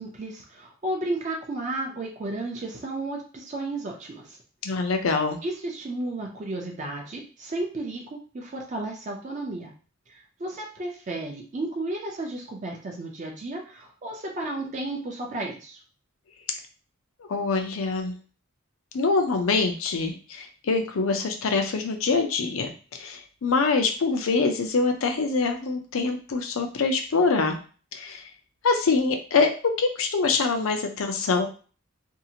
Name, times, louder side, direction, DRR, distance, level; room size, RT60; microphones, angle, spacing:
voice 1, 0.0-4.4 5.4-9.7 10.1-15.8, right 2 dB, 35° right, 0 dB, 0.4 m, -33 dB
voice 2, 4.6-5.4 17.3-18.1 18.9-27.6 27.9-28.2 28.6-31.5, left 4 dB, 75° left, 5 dB, 0.5 m, -24 dB
2.7 x 2.4 x 2.7 m, 0.38 s
head